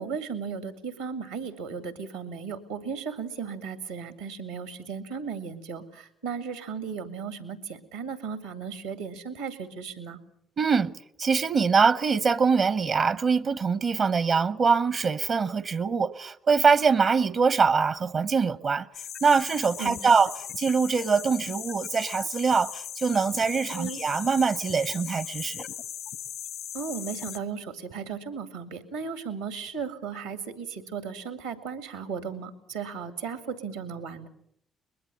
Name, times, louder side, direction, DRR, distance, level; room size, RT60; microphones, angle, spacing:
voice 1, 0.0-10.2 19.8-20.1 23.7-24.0 26.7-34.3, right 6 dB, 90° right, 2.2 m, -36 dB
voice 2, 10.6-10.9 11.2-18.9 19.2-25.7, right 5 dB, 55° right, 0.8 m, -23 dB
sound 1, 18.9-27.4, left 9 dB, 70° left, 1.2 m, -38 dB
22.0 x 21.5 x 7.0 m
hypercardioid pair, 45°, 0 cm